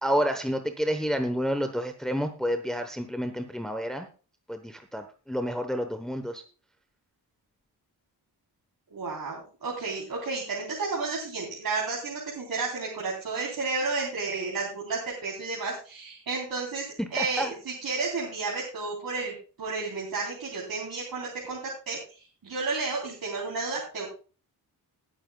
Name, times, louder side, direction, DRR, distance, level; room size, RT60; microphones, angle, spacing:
voice 1, 0.0-4.1 4.5-6.4 17.2-17.5, equal, ahead, 7 dB, 0.9 m, -29 dB
voice 2, 8.9-21.6 21.9-24.1, right 4 dB, 60° right, -4 dB, 3.6 m, -32 dB
19.5 x 9.0 x 2.3 m, 0.36 s
wide cardioid pair, 110°, 40 cm